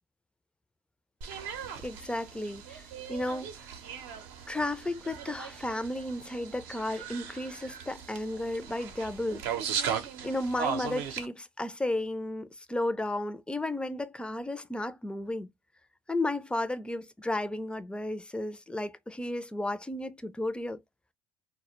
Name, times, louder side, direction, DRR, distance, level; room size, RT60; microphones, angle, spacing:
sound 1, 1.2-11.3, right 8 dB, 85° right, 0.6 m, -38 dB
voice 1, 1.8-2.8 3.1-3.5 4.5-9.4 10.2-15.5 16.1-20.8, left 1 dB, 5° left, 0.3 m, -33 dB
2.1 x 2.0 x 2.8 m
supercardioid pair, 80°, 15 cm